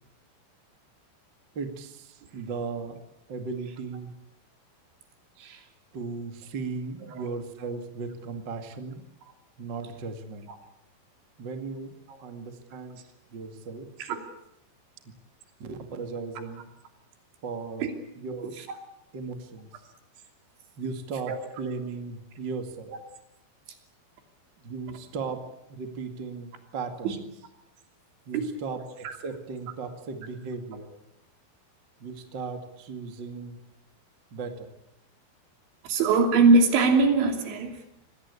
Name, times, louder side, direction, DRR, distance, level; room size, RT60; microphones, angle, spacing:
voice 1, 1.5-3.0 3.3-4.1 5.9-9.0 9.6-10.5 11.4-13.0 13.3-13.9 15.6-16.6 17.4-17.9 18.2-18.6 19.1-19.7 20.8-22.9 24.6-25.4 25.7-27.3 28.3-30.9 32.0-33.6 34.3-34.7, right 4 dB, 40° right, 6 dB, 1.7 m, -36 dB
voice 2, 35.9-37.8, right 3 dB, 75° right, 5 dB, 5.1 m, -22 dB
26.0 x 19.5 x 8.4 m, 0.80 s
omnidirectional pair, 5.4 m